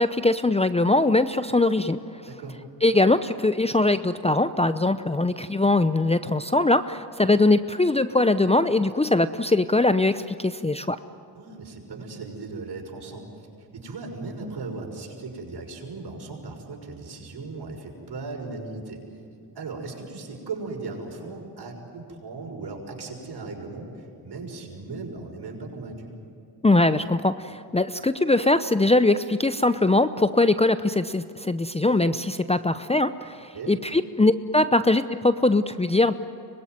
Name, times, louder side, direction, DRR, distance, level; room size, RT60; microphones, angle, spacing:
voice 1, 0.0-2.0 2.8-11.0 26.6-36.1, left 2 dB, 15° left, 12 dB, 0.7 m, -21 dB
voice 2, 2.3-2.6 11.3-19.0 19.5-26.1 33.5-33.8, right 3 dB, 60° right, 1 dB, 6.2 m, -37 dB
24.5 x 21.0 x 9.5 m, 2.4 s
supercardioid pair, 55°, 45 cm